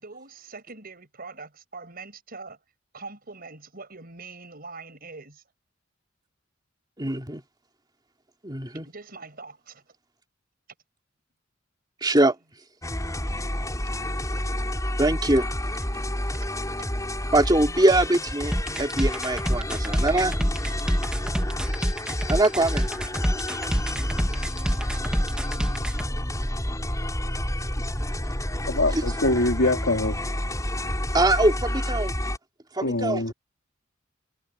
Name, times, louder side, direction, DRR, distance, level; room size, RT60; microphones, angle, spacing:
voice 1, 0.0-2.6 2.9-5.4 8.8-9.8 16.4-16.5 20.7-20.8, right 3 dB, 50° right, 5.9 m, -43 dB
voice 2, 7.0-7.4 8.4-8.9 12.0-12.4 15.0-15.5 17.3-20.3 22.3-22.9 28.9-29.0 31.1-32.2 32.7-33.3, right 2 dB, 20° right, 2.7 m, -22 dB
sound 1, 12.8-32.4, left 1 dB, 15° left, 7.0 m, -29 dB
sound 2, 18.5-26.1, equal, 5° right, 1.8 m, -27 dB
voice 3, 28.7-30.2 32.8-33.3, left 2 dB, 70° left, 3.5 m, -24 dB
head